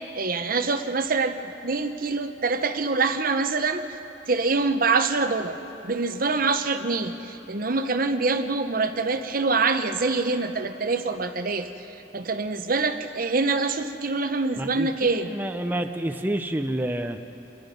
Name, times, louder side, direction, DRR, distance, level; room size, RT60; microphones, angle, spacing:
voice 1, 0.1-4.0 4.3-5.6 5.8-11.7 12.1-15.3, right 3 dB, 55° right, 8 dB, 1.0 m, -25 dB
voice 2, 14.6-17.2, right 1 dB, 10° right, 5 dB, 0.6 m, -29 dB
27.5 x 21.5 x 5.3 m, 2.9 s
head